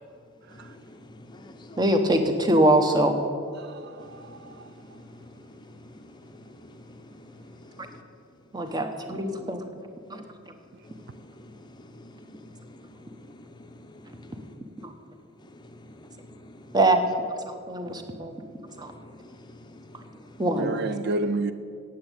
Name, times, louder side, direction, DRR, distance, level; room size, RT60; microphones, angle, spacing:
voice 1, 0.5-1.8 4.0-8.0 8.6-8.8 10.8-14.9 15.4-16.8 17.9-18.0 18.7-20.5, left 1 dB, 20° left, 0.7 m, -49 dB
voice 2, 1.8-3.2 8.5-9.6 10.1-10.2 14.8-14.9 16.7-17.0 17.7-18.3 18.8-18.9 20.4-20.8, right 1 dB, 20° right, 0.9 m, -23 dB
voice 3, 3.6-4.7 20.6-21.5, right 2 dB, 50° right, 0.4 m, -30 dB
8.6 x 8.1 x 8.9 m
head